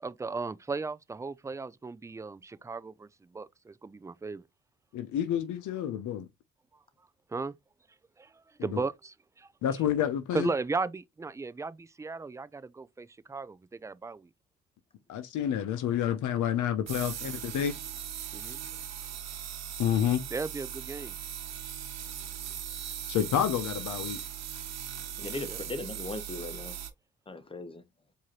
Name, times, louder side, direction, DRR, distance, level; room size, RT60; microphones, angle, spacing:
voice 1, 0.0-3.1 3.3-4.4 7.3-7.5 8.2-8.3 8.6-9.5 10.3-14.3 18.3-18.6 20.3-21.2 25.5-25.6, right 4 dB, 10° right, 0.3 m, -36 dB
voice 2, 4.9-6.3 8.7-8.8 9.6-10.5 15.1-17.8 19.8-20.2 23.1-24.2, left 9 dB, 75° left, 0.7 m, -29 dB
sound 1, 16.9-26.9, right 9 dB, 60° right, 1.0 m, -39 dB
voice 3, 25.2-26.8 27.3-27.8, left 2 dB, 20° left, 0.9 m, -38 dB
4.7 x 2.8 x 3.0 m
cardioid pair, 90°, 30 cm